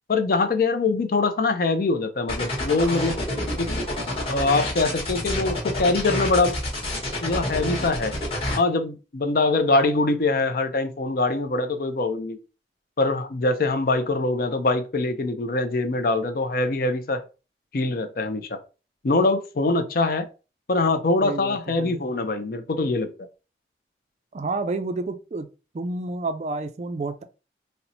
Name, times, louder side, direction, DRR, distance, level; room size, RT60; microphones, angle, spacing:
voice 1, 0.1-3.2 3.6-3.7 4.3-6.6 7.2-8.2 8.6-12.4 13.0-17.2 17.7-18.6 19.0-20.3 20.7-23.1, left 3 dB, 50° left, 0.5 m, -23 dB
sound 1, 2.3-8.6, left 1 dB, 30° left, 1.2 m, -28 dB
voice 2, 21.2-22.0 24.3-25.5 25.7-27.2, right 3 dB, 40° right, 0.3 m, -30 dB
4.3 x 2.1 x 2.6 m
head